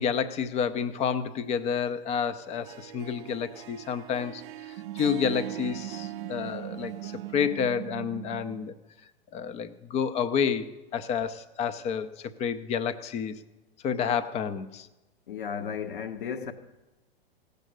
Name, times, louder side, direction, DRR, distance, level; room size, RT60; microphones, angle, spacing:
voice 1, 0.0-4.4 4.9-8.7 9.3-13.4 13.8-14.9, left 7 dB, 20° left, 0.7 m, -29 dB
Harp, 2.5-7.8, right 14 dB, 30° right, 0.4 m, -43 dB
sound 1, 4.8-8.7, right 14 dB, 65° right, 0.7 m, -39 dB
voice 2, 15.3-16.5, left 7 dB, 60° left, 1.2 m, -34 dB
17.0 x 6.7 x 6.6 m
figure-of-eight pair, 100°, 30 cm